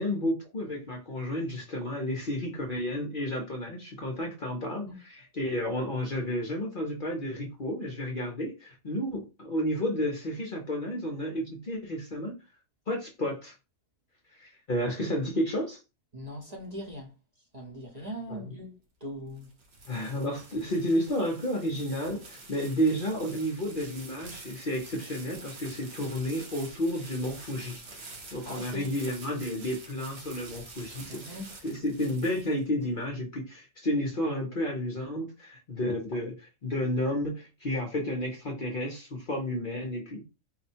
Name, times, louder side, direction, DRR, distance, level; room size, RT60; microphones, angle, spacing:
voice 1, 0.0-4.9 5.4-12.3 12.9-13.5 14.4-15.8 18.3-18.4 19.9-27.8 28.3-31.2 31.6-40.2, equal, 45° left, 0.8 m, -31 dB
voice 2, 16.1-17.1 17.5-18.7 19.0-19.5 28.4-28.9 31.1-31.5, equal, 30° right, 0.9 m, -40 dB
sound 1, 19.1-32.9, right 3 dB, 55° right, 1.1 m, -47 dB
4.2 x 2.1 x 4.3 m
omnidirectional pair, 1.5 m